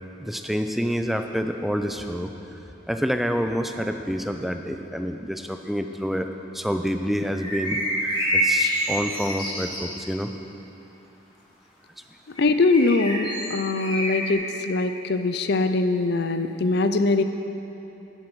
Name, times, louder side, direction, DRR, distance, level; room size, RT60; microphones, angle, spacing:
voice 1, 0.2-2.3 2.9-6.3 6.5-7.8 8.3-10.3, equal, ahead, 6 dB, 0.4 m, -27 dB
sound 1, 7.3-10.0 12.4-14.3, equal, 25° left, 2.4 m, -27 dB
voice 2, 12.4-17.2, left 3 dB, 55° left, 9 dB, 0.5 m, -22 dB
10.0 x 9.3 x 6.2 m, 2.9 s
head